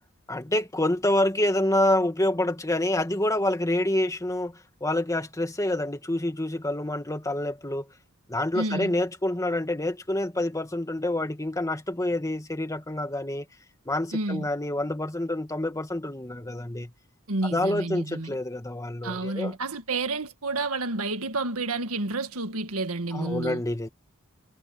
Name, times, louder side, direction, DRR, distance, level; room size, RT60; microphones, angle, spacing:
voice 1, 0.3-7.9 8.3-13.5 13.9-16.9 17.4-19.5 23.1-23.9, left 1 dB, 15° left, 1.9 m, -27 dB
voice 2, 8.5-9.0 14.1-14.5 17.3-18.4 19.0-23.6, right 2 dB, 90° right, 1.8 m, -30 dB
head